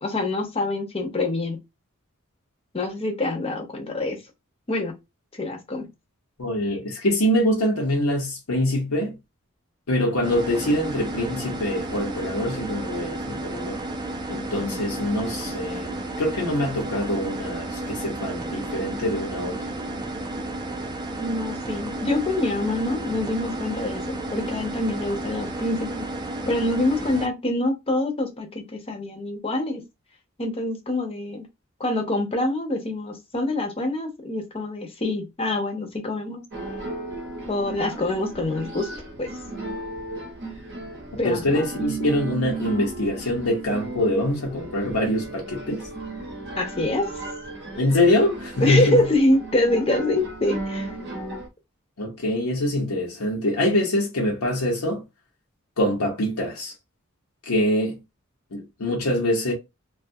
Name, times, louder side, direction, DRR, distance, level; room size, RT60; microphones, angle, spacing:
voice 1, 0.0-1.6 2.7-4.2 4.7-4.9 5.3-5.9 14.6-14.8 21.2-26.1 26.5-29.8 30.4-31.5 31.8-36.4 37.5-38.9 39.2-39.3 41.2-41.6 46.6-47.1 48.6-50.9, left 2 dB, 25° left, 0.6 m, -25 dB
voice 2, 6.4-9.2 9.9-13.8 14.3-19.6 41.2-45.9 47.8-49.0 52.0-55.0 55.8-56.7 57.5-58.0 58.5-59.5, left 1 dB, 85° left, 0.8 m, -24 dB
sound 1, 10.2-27.3, right 2 dB, 20° right, 0.4 m, -32 dB
sound 2, 36.5-51.5, right 2 dB, 55° right, 0.7 m, -35 dB
2.6 x 2.3 x 2.6 m
head